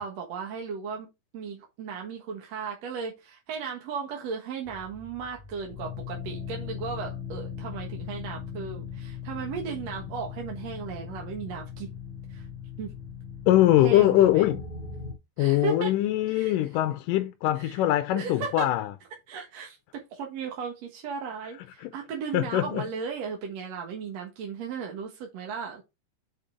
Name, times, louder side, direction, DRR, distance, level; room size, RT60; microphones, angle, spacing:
voice 1, 0.0-11.9 12.3-12.4 12.8-12.9 13.8-14.5 15.4-15.9 16.3-16.6 17.6-17.8 18.1-18.7 19.3-25.8, right 6 dB, 55° right, 2.2 m, -36 dB
sound 1, 4.6-15.1, left 7 dB, 5° right, 1.9 m, -39 dB
voice 2, 13.5-14.6 15.4-18.9 21.8-21.9 22.3-22.8, left 14 dB, 80° left, 2.0 m, -22 dB
6.6 x 5.4 x 3.8 m
omnidirectional pair, 4.3 m